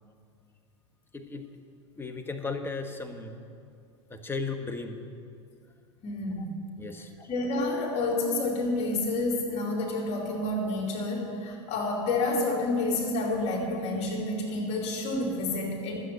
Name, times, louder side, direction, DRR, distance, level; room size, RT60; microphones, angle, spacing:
voice 1, 1.1-1.5 2.0-3.4 4.1-5.1 6.8-7.3, left 4 dB, 15° left, 5 dB, 1.3 m, -36 dB
voice 2, 6.0-6.5 7.3-16.0, left 2 dB, 50° left, -1 dB, 2.7 m, -29 dB
12.5 x 7.8 x 8.2 m, 2.3 s
hypercardioid pair, 90°, 15 cm